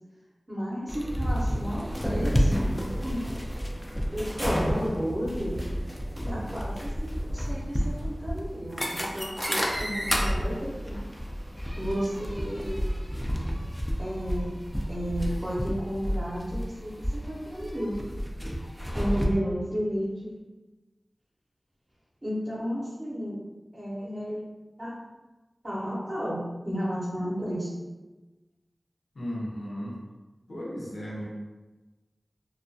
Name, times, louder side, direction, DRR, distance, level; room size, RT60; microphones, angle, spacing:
voice 1, 0.5-2.7 3.0-3.2 4.1-5.6 6.3-6.7 7.0-11.0 11.7-12.8 14.0-14.5 14.9-18.0 18.9-20.3 22.2-23.4 23.7-24.4 24.8-24.9 25.6-27.7, equal, 35° right, -8 dB, 0.6 m, -32 dB
sound 1, 0.9-19.3, equal, 10° left, 0.3 m, -30 dB
voice 2, 29.1-30.0 30.5-31.3, equal, 75° left, -6 dB, 0.7 m, -35 dB
2.2 x 2.2 x 2.5 m, 1.2 s
wide cardioid pair, 60°, 0 cm